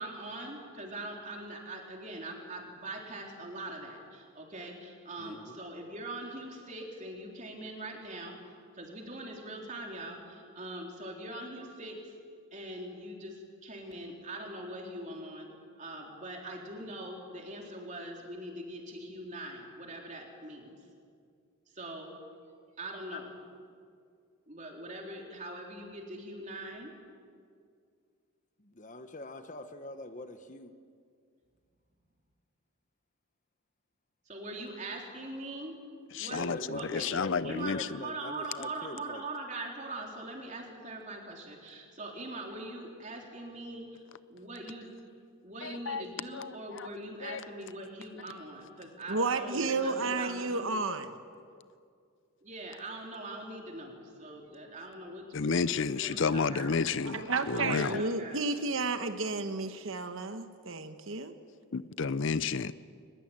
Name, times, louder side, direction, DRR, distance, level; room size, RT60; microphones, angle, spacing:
voice 1, 0.0-8.4 8.7-12.2 12.5-20.9 21.7-22.1 22.8-23.4 24.5-26.9 34.3-35.8 36.2-37.2 37.4-44.9 45.4-50.8 52.4-56.7 57.5-58.4, right 1 dB, 35° right, 0 dB, 3.8 m, -42 dB
voice 2, 5.2-5.5 23.1-23.2 28.6-30.7 36.3-39.2 57.2-58.2, left 1 dB, 35° left, 8 dB, 1.1 m, -44 dB
voice 3, 36.2-36.6 36.9-37.8 45.9-46.0 47.3-47.4 55.3-58.0 61.7-62.7, left 5 dB, 55° left, 15 dB, 0.6 m, -30 dB
voice 4, 49.1-51.1 57.0-61.3, right 3 dB, 60° right, 8 dB, 1.2 m, -32 dB
22.5 x 21.0 x 8.9 m, 2.2 s
head